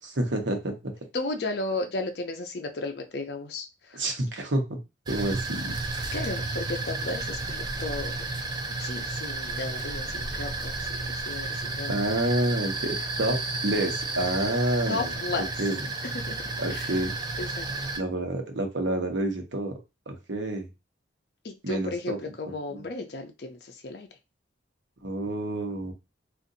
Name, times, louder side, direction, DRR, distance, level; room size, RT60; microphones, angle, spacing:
voice 1, 0.0-0.9 3.9-4.8 5.1-5.8 11.9-15.2 15.6-15.8 16.6-17.1 18.0-19.8 20.1-20.7 21.6-22.2 22.4-22.8 25.0-25.9, right 1 dB, 80° right, 3 dB, 0.9 m, -28 dB
voice 2, 1.1-4.0 6.1-8.2 8.8-12.0 14.9-15.5 16.1-16.3 16.7-16.9 17.4-17.7 21.4-23.6 23.8-24.1, left 3 dB, 60° left, 4 dB, 0.5 m, -34 dB
sound 1, 5.1-18.0, right 3 dB, 20° right, 0.4 m, -32 dB
2.6 x 2.5 x 3.8 m, 0.25 s
head